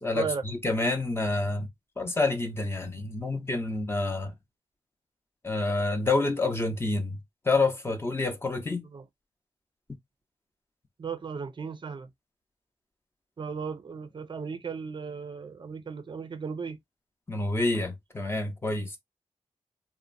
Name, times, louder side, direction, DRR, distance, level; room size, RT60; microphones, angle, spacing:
voice 1, 0.0-1.7 2.0-4.3 5.4-7.2 7.4-8.9 17.3-19.0, left 2 dB, 20° left, 0.7 m, -28 dB
voice 2, 11.0-12.1 13.4-16.8, right 5 dB, 45° right, 0.5 m, -36 dB
2.8 x 2.1 x 2.5 m
cardioid pair, 65°, 11 cm